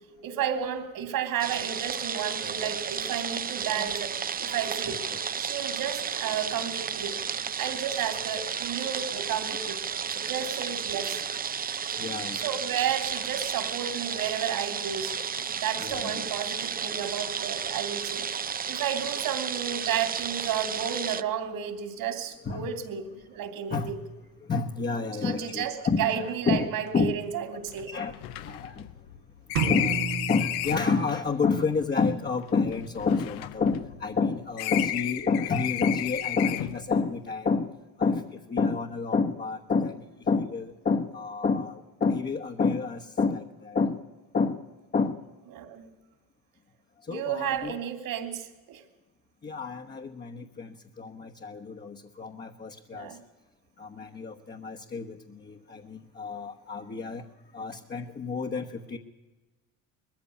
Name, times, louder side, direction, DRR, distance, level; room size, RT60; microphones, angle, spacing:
voice 1, 0.2-4.1 4.4-5.0 5.4-7.2 7.6-9.8 10.1-11.2 12.3-15.1 15.6-18.3 18.7-24.0 25.2-27.9 45.5-45.9 47.1-48.8 52.9-53.2, right 9 dB, 60° right, 8 dB, 3.0 m, -32 dB
sound 1, 1.4-21.2, right 7 dB, 25° right, 0.6 m, -33 dB
voice 2, 12.0-12.5 15.8-16.3 22.4-22.7 23.7-24.0 24.5-27.2 27.9-28.2 28.4-28.9 29.5-37.7 38.0-44.0 44.3-44.6 44.9-45.2 47.1-47.7 49.4-53.1 53.8-57.3 57.5-59.0, left 4 dB, 25° left, 2 dB, 1.2 m, -29 dB
sound 2, 26.9-27.0 27.2-27.3 27.7-31.0 31.8-34.2 34.6-36.9, left 14 dB, 75° left, 1.0 m, -33 dB
sound 3, 29.6-31.4, right 6 dB, 85° right, 2.1 m, -31 dB
20.5 x 14.5 x 8.5 m, 1.2 s
supercardioid pair, 90°, 38 cm